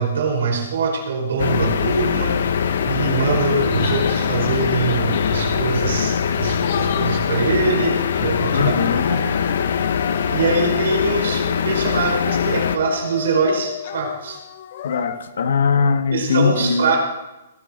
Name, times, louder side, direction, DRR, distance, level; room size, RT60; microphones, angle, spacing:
voice 1, 0.0-2.4 2.8-8.7 9.1-9.2 10.3-14.4 16.1-17.0, right 4 dB, 70° right, 1 dB, 5.1 m, -23 dB
sound 1, 1.4-12.8, left 7 dB, 65° left, 1.1 m, -22 dB
sound 2, 3.6-5.6 6.3-7.3 7.9-11.4 11.7-15.2, left 9 dB, 40° left, 1.0 m, -34 dB
voice 2, 8.5-9.2 14.8-16.9, left 5 dB, 80° left, 8 dB, 1.6 m, -20 dB
18.5 x 11.0 x 4.4 m, 1.0 s
hypercardioid pair, 170°, 0 cm